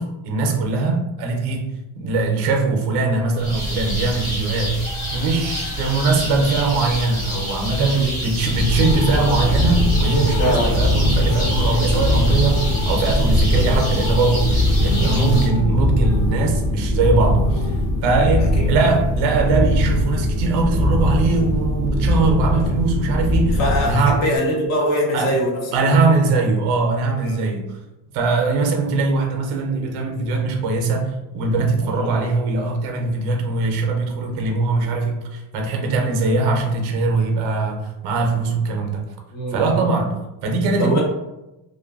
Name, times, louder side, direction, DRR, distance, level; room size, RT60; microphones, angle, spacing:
voice 1, 0.0-4.8 5.1-17.8 18.0-24.3 25.1-25.3 25.7-27.7 28.1-39.1 39.5-41.0, right 3 dB, 60° right, 0.6 m, -21 dB
sound 1, 3.4-15.5, equal, 10° left, 0.8 m, -27 dB
voice 2, 7.8-8.2 10.4-10.7 15.0-15.2 18.6-18.7 23.6-25.6 27.2-27.4 31.8-32.1 39.3-39.8 40.8-41.0, equal, 35° left, 0.6 m, -22 dB
sound 2, 8.4-24.4, left 1 dB, 80° left, 0.5 m, -21 dB
2.5 x 2.2 x 2.3 m
cardioid pair, 170°, 46 cm